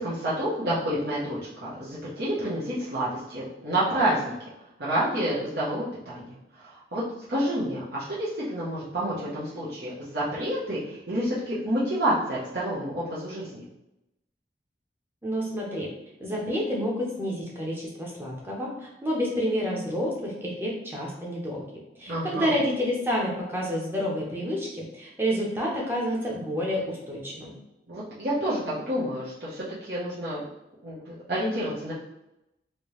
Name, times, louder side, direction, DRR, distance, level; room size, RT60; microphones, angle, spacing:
voice 1, 0.0-4.3 4.8-7.0 7.3-13.6 22.1-22.6 27.9-28.6 28.9-30.4 30.8-31.9, right 1 dB, 60° right, -10 dB, 0.8 m, -29 dB
voice 2, 15.2-15.9 16.2-21.6 22.0-27.5, equal, 10° right, -3 dB, 0.7 m, -29 dB
3.2 x 2.7 x 3.1 m, 0.90 s
head